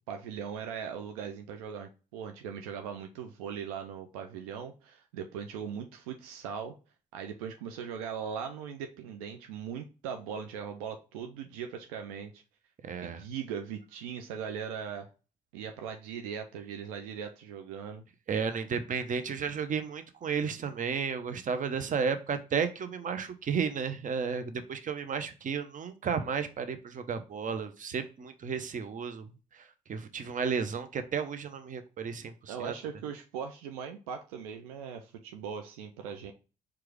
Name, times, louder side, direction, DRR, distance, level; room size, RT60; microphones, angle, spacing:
voice 1, 0.1-6.7 7.1-12.4 13.0-15.1 15.5-18.0 32.5-36.3, right 7 dB, 80° right, 6 dB, 0.4 m, -39 dB
voice 2, 12.8-13.2 18.3-32.7, right 6 dB, 45° right, 9 dB, 0.7 m, -33 dB
4.6 x 2.4 x 4.6 m, 0.32 s
hypercardioid pair, 40°, 18 cm